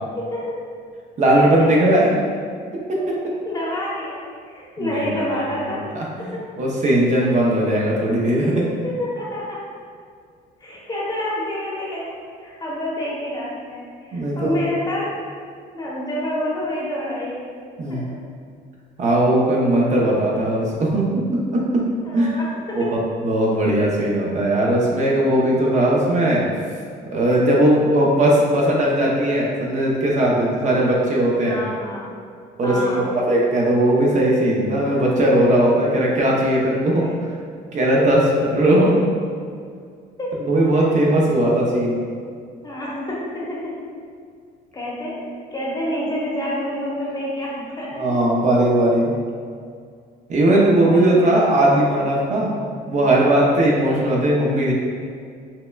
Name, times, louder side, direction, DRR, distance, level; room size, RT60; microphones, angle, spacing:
voice 1, 0.2-0.6 1.3-1.7 3.4-4.2 4.5-5.8 6.3-6.4 8.8-9.6 10.6-12.2 12.4-15.1 15.7-17.4 17.9-18.0 22.0-22.9 31.4-32.1 32.6-33.1 37.0-37.1 38.0-38.1 40.2-40.4 40.7-41.1 42.6-43.7 44.7-45.2 45.5-48.1 50.8-51.7 53.2-53.3, left 1 dB, 25° left, -5 dB, 0.9 m, -28 dB
voice 2, 1.2-2.1 4.8-5.2 6.0-8.6 14.1-14.6 17.8-18.1 19.0-21.8 22.1-22.4 22.7-22.8 23.2-26.4 27.1-31.6 32.6-37.0 37.7-39.0 40.5-42.0 48.0-49.1 50.3-52.5 52.9-54.7, right 1 dB, 45° right, -3 dB, 0.6 m, -18 dB
5.5 x 2.1 x 2.2 m, 2.2 s
cardioid pair, 110°, 17 cm